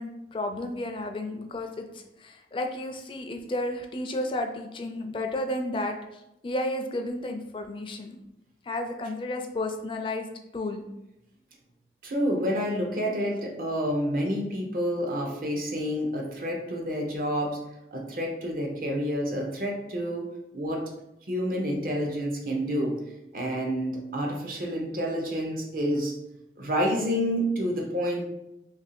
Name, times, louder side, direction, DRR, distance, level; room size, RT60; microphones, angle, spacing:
voice 1, 0.0-8.2 8.6-10.3 10.5-10.8, left 1 dB, 30° left, 5 dB, 0.3 m, -32 dB
voice 2, 12.0-17.6 17.9-20.2 20.5-20.8 21.3-23.0 23.3-26.1 26.6-28.3, equal, 50° right, 1 dB, 0.7 m, -28 dB
3.0 x 2.6 x 4.1 m, 0.88 s
head